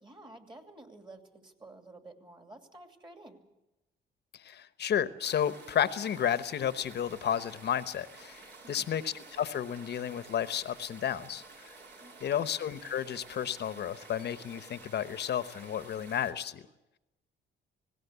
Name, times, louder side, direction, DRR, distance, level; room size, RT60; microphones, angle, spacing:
voice 1, 0.0-3.4 8.6-9.0 12.0-12.5, right 2 dB, 25° right, 5 dB, 2.7 m, -52 dB
voice 2, 4.3-11.4 12.2-16.6, left 9 dB, 60° left, 14 dB, 1.0 m, -32 dB
sound 1, 5.2-16.3, right 3 dB, 60° right, 3.8 m, -51 dB
19.0 x 17.0 x 8.2 m, 0.97 s
cardioid pair, 90°, 20 cm